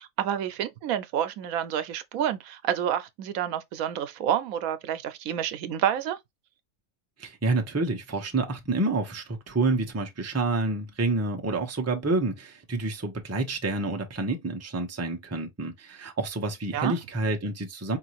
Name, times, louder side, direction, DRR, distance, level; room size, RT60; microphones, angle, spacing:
voice 1, 0.0-6.2 16.7-17.0, right 10 dB, 85° right, 1.1 m, -29 dB
voice 2, 7.2-18.0, right 2 dB, 15° right, 0.6 m, -28 dB
4.7 x 2.6 x 2.9 m
omnidirectional pair, 1.4 m